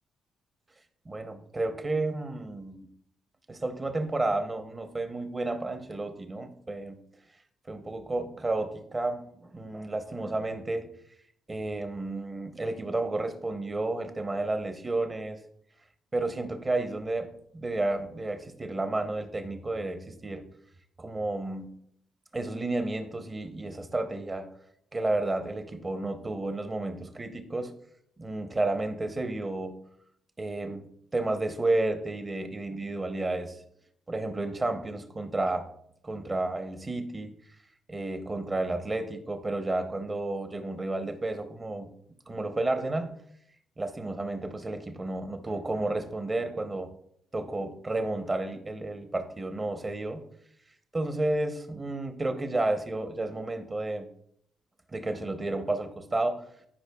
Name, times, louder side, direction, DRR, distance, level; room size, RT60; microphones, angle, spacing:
voice 1, 1.0-2.9 3.5-7.0 7.7-10.9 11.5-15.4 16.1-20.4 21.0-21.7 22.3-24.5 24.9-27.7 28.2-29.8 30.4-30.9 31.1-33.6 34.1-35.7 36.0-37.3 37.9-41.9 42.3-43.2 43.8-46.9 47.3-50.3 50.9-54.1 54.9-56.4, right 2 dB, 25° right, 7 dB, 0.9 m, -31 dB
11.0 x 4.9 x 2.3 m, 0.70 s
cardioid pair, 90°, 0 cm